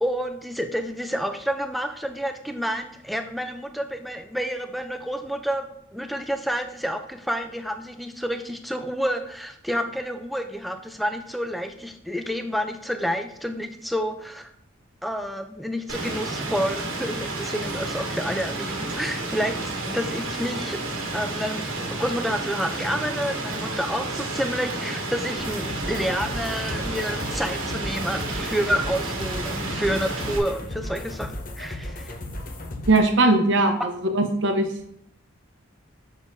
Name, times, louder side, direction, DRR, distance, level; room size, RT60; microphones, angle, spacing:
voice 1, 0.0-14.5 15.0-20.8 21.1-21.6 21.9-32.2, equal, ahead, 6 dB, 0.4 m, -29 dB
Rain, 15.9-30.4, right 2 dB, 80° right, 1.2 m, -31 dB
sound 1, 25.4-33.0, left 1 dB, 40° left, 0.7 m, -35 dB
voice 2, 32.9-34.7, right 2 dB, 60° right, 5 dB, 0.9 m, -20 dB
7.1 x 6.3 x 2.7 m, 0.74 s
head